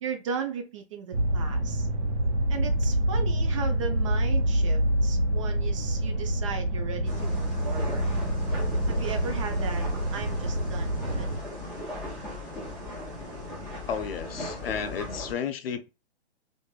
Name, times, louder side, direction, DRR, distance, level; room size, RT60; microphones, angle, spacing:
voice 1, 0.0-1.9 2.5-8.1 8.9-11.3, right 6 dB, 30° right, 0.4 m, -36 dB
sound 1, 1.1-11.4, right 1 dB, 80° right, 1.0 m, -26 dB
sound 2, 7.0-15.3, left 1 dB, 5° right, 1.1 m, -38 dB
voice 2, 13.9-15.9, left 7 dB, 60° left, 0.5 m, -32 dB
3.1 x 2.5 x 2.3 m
hypercardioid pair, 140°, 33 cm